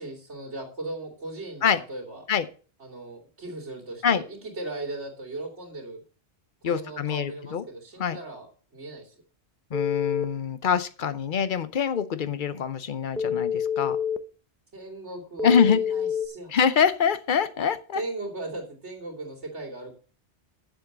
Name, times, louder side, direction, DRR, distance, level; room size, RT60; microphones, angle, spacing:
voice 1, 0.0-2.2 2.8-6.0 6.6-9.1 14.7-16.6 17.9-19.9, right 2 dB, 90° right, 0 dB, 3.2 m, -37 dB
voice 2, 6.6-7.6 8.0-8.2 9.7-14.0 15.4-15.8 16.5-18.0, left 7 dB, 50° left, 13 dB, 0.9 m, -24 dB
Telephone, 9.7-10.2 13.2-14.2 15.4-16.3, left 7 dB, 5° left, 0.4 m, -27 dB
7.7 x 7.4 x 6.7 m, 0.39 s
omnidirectional pair, 1.1 m